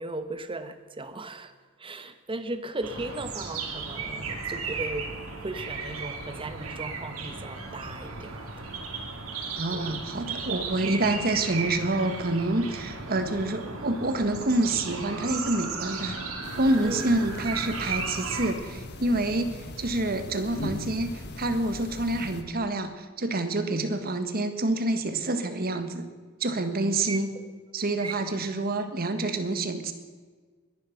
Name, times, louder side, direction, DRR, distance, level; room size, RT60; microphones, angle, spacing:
voice 1, 0.0-1.5 1.8-5.1 5.4-8.5 9.7-10.0 16.8-17.0 27.1-27.2 28.0-28.2, right 2 dB, 25° right, 10 dB, 1.0 m, -36 dB
sound 1, 2.8-18.5, right 4 dB, 85° right, 2.7 m, -35 dB
voice 2, 9.6-16.2 16.6-26.0 26.4-27.3 27.7-29.9, right 2 dB, 45° right, 8 dB, 1.5 m, -27 dB
sound 2, 16.4-22.4, left 1 dB, 55° left, 1.5 m, -40 dB
21.5 x 11.0 x 5.9 m, 1.5 s
head